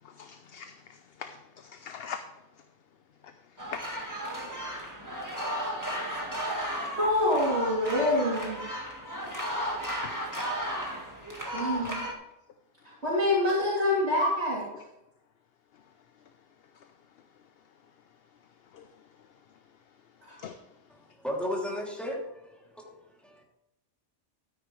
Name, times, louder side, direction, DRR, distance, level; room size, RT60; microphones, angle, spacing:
voice 1, 0.0-2.6 3.2-4.7 10.0-10.2 10.6-10.7 11.6-11.9 12.9-13.0 15.7-15.8 16.7-16.9 18.6-19.6 20.3-20.7, left 7 dB, 60° left, 8 dB, 0.9 m, -45 dB
sound 1, 3.6-12.1, equal, 15° right, 1.8 m, -34 dB
voice 2, 7.0-8.6 11.5-12.0 12.8-14.6 20.3-20.4, left 1 dB, 60° right, -7 dB, 3.4 m, -26 dB
voice 3, 21.2-22.9 23.2-23.4, left 1 dB, ahead, -3 dB, 2.8 m, -34 dB
13.0 x 9.8 x 3.2 m, 0.90 s
omnidirectional pair, 1.2 m